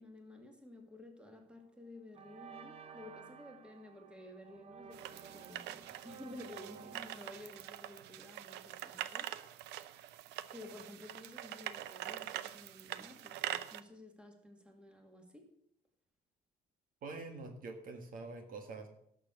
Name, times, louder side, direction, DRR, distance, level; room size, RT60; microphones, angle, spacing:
voice 1, 0.0-9.4 10.5-15.5, left 1 dB, 5° right, 3 dB, 2.2 m, -53 dB
sound 1, 1.4-1.7 2.1-9.0, right 6 dB, 35° right, 1.0 m, -55 dB
sound 2, 4.9-13.8, right 13 dB, 85° right, 0.6 m, -44 dB
voice 2, 17.0-18.9, right 3 dB, 55° right, 5 dB, 1.8 m, -45 dB
11.5 x 6.8 x 7.2 m, 0.74 s
cardioid pair, 110°, 17 cm